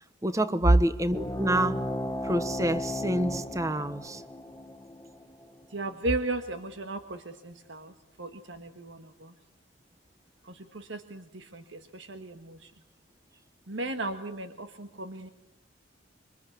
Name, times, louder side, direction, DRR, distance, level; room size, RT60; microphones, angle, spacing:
voice 1, 0.2-1.9 2.2-4.2, right 1 dB, 15° right, 1.1 m, -28 dB
sound 1, 1.1-6.2, left 1 dB, 15° left, 1.3 m, -35 dB
voice 2, 5.7-9.3 10.4-12.7 13.7-15.3, right 2 dB, 70° right, 1.6 m, -32 dB
26.5 x 24.5 x 8.4 m
head